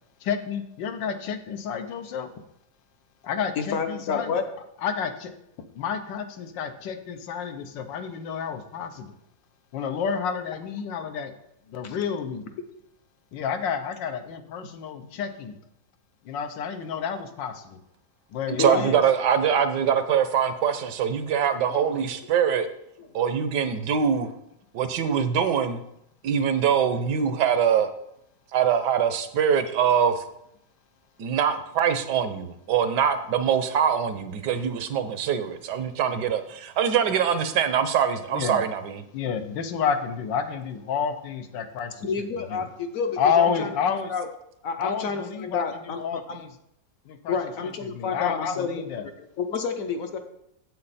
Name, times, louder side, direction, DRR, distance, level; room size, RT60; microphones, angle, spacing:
voice 1, 0.2-2.3 3.2-4.4 4.8-5.3 5.7-9.1 9.7-11.3 11.7-12.5 13.3-15.6 16.2-17.8 18.3-19.0 38.3-38.6 39.1-42.7 43.2-44.1 44.8-46.5 47.1-47.4 47.8-49.1, left 7 dB, 80° left, 8 dB, 1.5 m, -30 dB
voice 2, 3.6-4.4 11.8-11.9 18.6-18.9 21.7-22.2 22.6-22.7 23.2-23.3 42.0-44.3 44.6-46.4 47.3-48.7 49.0-49.1 49.4-50.2, left 5 dB, 60° left, 6 dB, 1.0 m, -30 dB
voice 3, 18.6-22.7 23.1-24.3 24.7-25.8 26.2-27.9 28.5-30.2 31.2-39.0, right 8 dB, 75° right, 10 dB, 1.3 m, -23 dB
8.7 x 7.7 x 4.1 m, 0.78 s
omnidirectional pair, 1.9 m